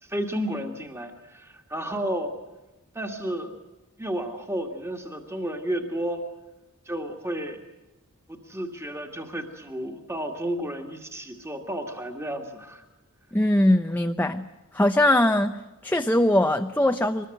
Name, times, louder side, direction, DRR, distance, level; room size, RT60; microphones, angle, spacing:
voice 1, 0.0-2.3 2.9-3.6 4.0-6.2 6.9-7.6 8.3-12.8, right 1 dB, 10° right, 4 dB, 2.0 m, -32 dB
voice 2, 13.3-14.5 14.7-15.6 15.8-17.3, left 1 dB, 10° left, 6 dB, 0.7 m, -21 dB
24.0 x 21.5 x 7.8 m, 1.0 s
head